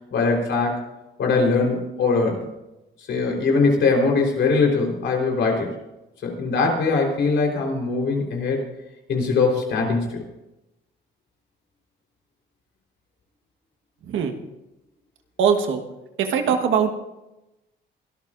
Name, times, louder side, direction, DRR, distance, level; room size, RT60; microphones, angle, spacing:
voice 1, 0.1-0.8 1.2-2.5 3.1-5.7 6.2-8.6 9.1-10.2, left 4 dB, 70° left, 1 dB, 4.0 m, -21 dB
voice 2, 14.0-14.3 15.4-15.8 16.2-16.9, right 7 dB, 80° right, 6 dB, 1.4 m, -21 dB
23.0 x 13.0 x 2.6 m, 0.97 s
cardioid pair, 90°, 20 cm